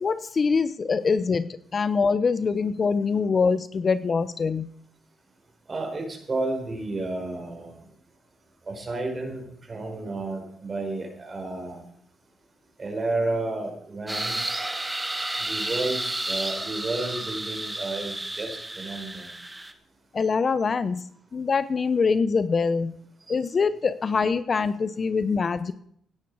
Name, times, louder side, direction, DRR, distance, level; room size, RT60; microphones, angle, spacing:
voice 1, 0.0-4.7 20.1-21.0 21.3-22.9 23.3-25.7, left 5 dB, 40° left, 13 dB, 0.7 m, -24 dB
voice 2, 5.7-7.8 8.7-11.8 12.8-14.5 15.4-19.3 23.3-23.4, right 2 dB, 30° right, 3 dB, 4.9 m, -31 dB
sound 1, 14.1-19.7, right 1 dB, 15° right, 1.5 m, -31 dB
17.0 x 10.5 x 4.8 m, 0.66 s
cardioid pair, 90°, 0 cm